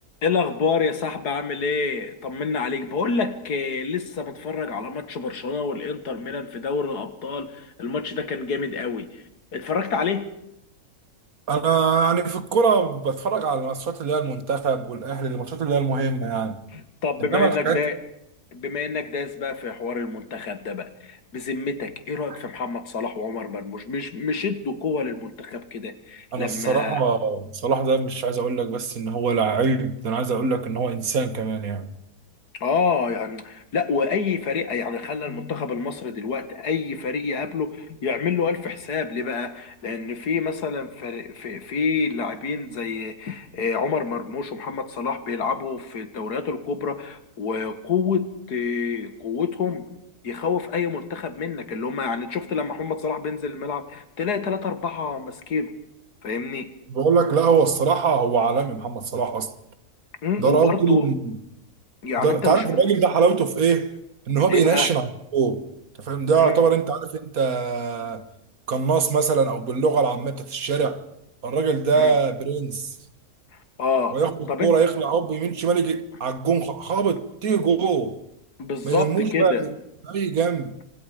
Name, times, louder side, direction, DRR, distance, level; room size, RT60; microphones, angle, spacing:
voice 1, 0.2-9.2 9.5-10.3 16.7-18.0 18.5-27.0 32.5-49.9 50.2-55.7 56.2-56.7 60.2-61.1 62.0-62.9 64.5-64.9 66.4-66.6 72.0-72.2 73.8-74.2 74.5-74.7 78.6-79.6, left 5 dB, 85° left, 2.3 m, -27 dB
voice 2, 11.5-16.6 17.2-17.8 26.3-31.9 56.9-59.5 60.4-61.3 62.2-63.9 64.3-65.6 66.0-68.2 68.7-71.0 71.4-73.0 74.1-78.2 78.8-79.7 80.1-80.8, right 5 dB, 65° right, 1.9 m, -22 dB
28.0 x 25.0 x 5.1 m
omnidirectional pair, 1.7 m